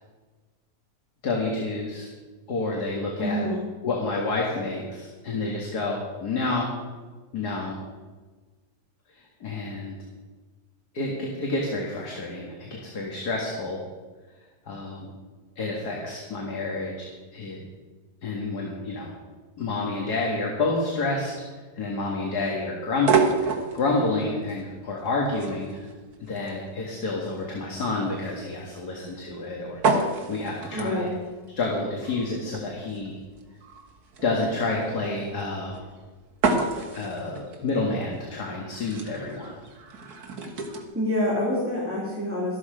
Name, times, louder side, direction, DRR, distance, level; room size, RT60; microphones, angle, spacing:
voice 1, 1.2-2.1 2.5-3.4 3.8-6.7 7.3-7.8 9.1-9.9 10.9-13.8 14.7-15.1 15.6-17.6 18.2-19.2 19.6-21.3 21.8-25.9 26.2-31.1 31.6-33.2 34.2-35.8 36.9-39.5, left 3 dB, 75° left, -2 dB, 2.4 m, -29 dB
voice 2, 3.2-3.6 30.7-31.1 40.9-42.6, left 1 dB, 5° right, -7 dB, 2.9 m, -27 dB
sound 1, 22.9-40.8, right 4 dB, 70° right, 1.9 m, -31 dB
13.0 x 12.5 x 5.1 m, 1.3 s
omnidirectional pair, 1.7 m